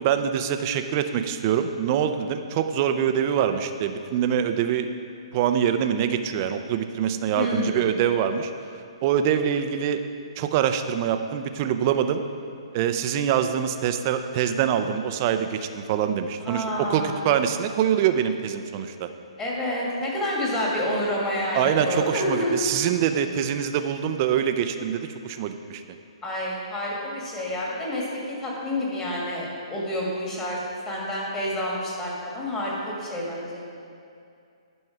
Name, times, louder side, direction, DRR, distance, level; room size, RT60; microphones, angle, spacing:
voice 1, 0.0-4.9 5.3-8.5 9.0-10.0 10.4-12.2 12.7-19.1 21.5-25.8, right 9 dB, 35° right, 8 dB, 0.5 m, -24 dB
voice 2, 7.4-7.9 16.5-17.2 19.4-22.5 26.2-28.0 28.4-30.6 30.9-33.6, left 1 dB, 15° left, -4 dB, 1.8 m, -28 dB
10.5 x 5.4 x 4.7 m, 2.4 s
hypercardioid pair, 155°, 3 cm